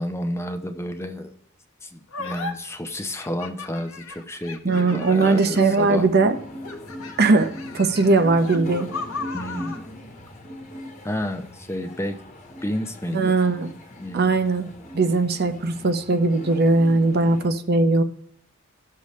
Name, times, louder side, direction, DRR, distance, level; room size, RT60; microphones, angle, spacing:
voice 1, 0.0-1.3 1.8-6.1 9.3-9.8 11.0-12.2 12.6-13.4 14.0-14.3, left 1 dB, 10° left, 7 dB, 0.7 m, -31 dB
sound 1, 2.1-2.5 3.2-6.0 6.6-9.8, left 4 dB, 65° left, 1.1 m, -36 dB
voice 2, 4.6-6.4 7.2-8.9 13.1-13.7 14.1-14.7 14.9-18.0, right 3 dB, 45° right, 9 dB, 0.7 m, -19 dB
sound 2, 5.1-17.5, left 1 dB, 35° left, 1.3 m, -40 dB
17.0 x 6.7 x 3.1 m, 0.68 s
head